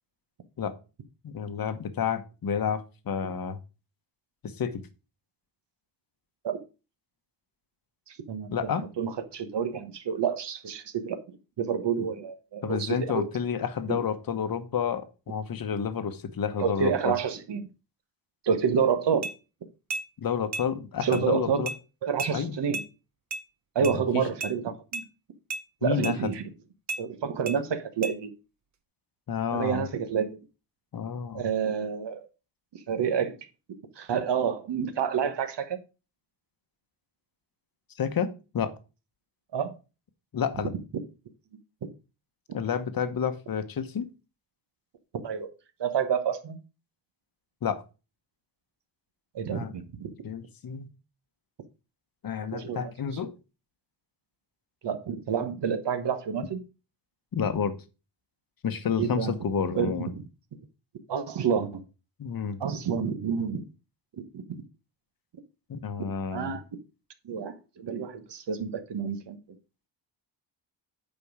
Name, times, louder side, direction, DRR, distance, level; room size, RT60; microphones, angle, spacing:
voice 1, 1.2-3.6 4.4-4.8 8.5-8.8 12.6-17.1 20.2-21.7 22.3-22.6 23.8-24.2 25.8-26.3 29.3-29.9 30.9-31.5 38.0-38.7 40.3-40.7 42.5-44.1 47.6-47.8 49.5-49.8 50.2-50.9 52.2-53.3 57.3-57.7 58.6-60.1 62.2-62.6 65.7-66.6, left 7 dB, 50° left, 1.1 m, -30 dB
voice 2, 8.1-8.7 9.0-11.2 11.6-13.2 13.9-14.0 16.6-17.7 18.4-19.3 21.0-21.7 22.0-22.8 23.7-25.0 25.8-26.4 27.0-28.3 29.5-30.4 31.3-32.3 32.9-33.3 34.0-35.8 39.5-39.7 45.2-45.5 45.8-46.6 49.3-50.1 52.5-52.9 54.8-56.6 59.0-59.3 59.8-60.2 61.1-61.8 62.6-63.6 64.3-64.4 66.3-66.6 67.2-69.4, right 7 dB, 60° right, 1.2 m, -28 dB
sound 1, 19.2-19.4 19.9-20.1 20.5-20.7 21.1-21.2 21.7-21.8 22.2-22.3 22.7-22.9 23.3-23.4 23.8-24.0 24.4-24.5 24.9-25.1 25.5-25.6 26.0-26.2 26.9-27.0 27.5-27.6 28.0-28.2, right 3 dB, 35° right, 0.7 m, -33 dB
8.8 x 5.3 x 4.8 m
wide cardioid pair, 155°, 46 cm